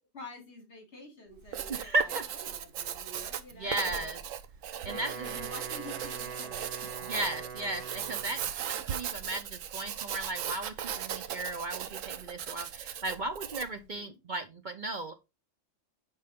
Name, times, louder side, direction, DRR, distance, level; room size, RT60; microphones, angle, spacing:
voice 1, 0.1-4.1 4.9-6.9 13.7-14.2, left 2 dB, 60° left, 3 dB, 2.8 m, -48 dB
Writing, 1.3-13.8, right 9 dB, 90° right, 1.1 m, -38 dB
voice 2, 1.7-2.2 3.6-4.2 4.8-5.3 7.0-15.1, right 2 dB, 45° right, 8 dB, 0.8 m, -35 dB
Wind instrument woodwind instrument, 4.7-8.6, right 6 dB, 70° right, 1.6 m, -43 dB
8.1 x 5.3 x 3.5 m, 0.24 s
omnidirectional pair, 1.3 m